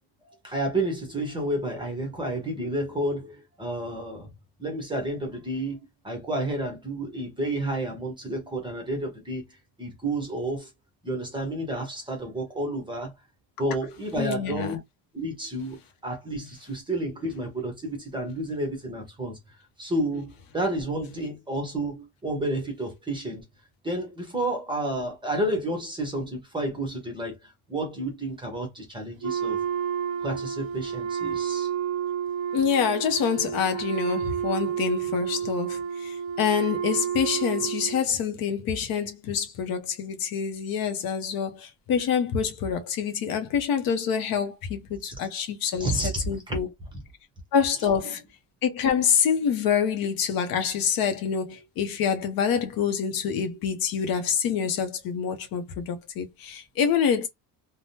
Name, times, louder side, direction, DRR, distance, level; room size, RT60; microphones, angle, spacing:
voice 1, 0.2-4.3 4.6-5.8 6.0-9.4 9.8-10.7 11.0-13.1 13.6-14.8 15.1-23.4 23.8-29.6 30.2-31.7 45.8-46.6, right 1 dB, 10° right, 0.9 m, -30 dB
voice 2, 14.2-14.8 32.5-46.7 47.5-48.2 48.6-57.3, left 7 dB, 50° left, 0.7 m, -26 dB
Wind instrument woodwind instrument, 29.2-38.0, right 8 dB, 35° right, 0.5 m, -30 dB
3.4 x 2.1 x 2.7 m
cardioid pair, 170°, 45 cm